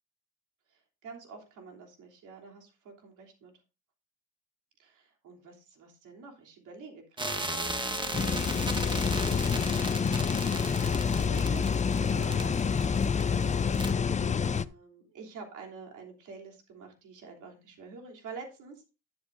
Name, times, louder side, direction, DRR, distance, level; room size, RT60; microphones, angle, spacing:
voice 1, 0.7-3.5 4.8-9.7 10.6-18.8, right 4 dB, 85° right, 2 dB, 3.2 m, -48 dB
sound 1, 7.2-13.4 13.7-13.9, right 1 dB, 15° right, 1.6 m, -36 dB
sound 2, 8.1-14.6, left 6 dB, 25° left, 0.5 m, -27 dB
11.5 x 9.5 x 2.6 m, 0.29 s
cardioid pair, 90°, 30 cm